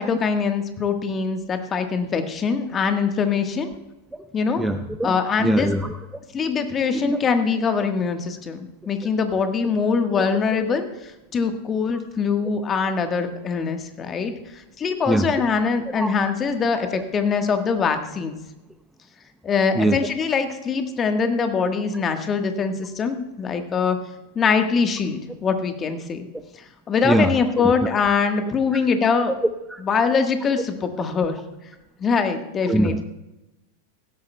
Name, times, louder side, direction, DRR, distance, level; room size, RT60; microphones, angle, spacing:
voice 1, 0.0-3.7 4.3-4.7 5.0-5.7 6.3-18.3 19.4-24.0 24.3-26.3 26.5-29.3 29.8-31.4 32.0-32.9, left 5 dB, 25° left, 7 dB, 1.4 m, -23 dB
voice 2, 4.6-5.9 7.0-7.2 10.1-10.3 10.7-10.8 11.9-12.0 15.1-15.4 16.0-16.1 16.9-17.0 19.8-20.0 27.0-27.9 29.7-29.8 32.7-33.0, right 1 dB, 5° right, 8 dB, 0.6 m, -23 dB
16.5 x 13.0 x 2.3 m, 0.96 s
figure-of-eight pair, 90°, 0 cm